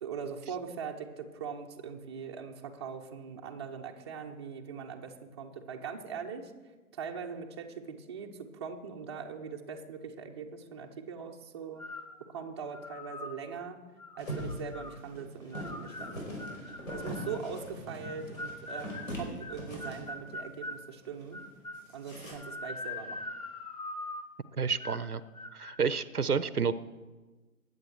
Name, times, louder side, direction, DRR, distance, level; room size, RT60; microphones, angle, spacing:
voice 1, 0.0-6.5 6.9-11.9 12.2-13.8 14.2-16.3 16.9-21.4 21.9-23.3, right 6 dB, 20° right, 1 dB, 0.6 m, -41 dB
sound 1, 11.8-12.2 12.7-13.4 14.0-15.0 15.5-17.5 18.0-20.8 21.3-21.9 22.4-24.3 24.8-25.1 25.3-25.8, left 2 dB, 25° left, 0.5 m, -42 dB
sound 2, 14.2-20.4 20.7-20.8 21.1-21.4 21.7-22.3, equal, 65° left, 5.3 m, -41 dB
voice 2, 24.6-25.2 25.5-26.7, right 6 dB, 85° right, 16 dB, 0.7 m, -29 dB
20.0 x 8.0 x 4.7 m, 1.3 s
figure-of-eight pair, 130°, 44 cm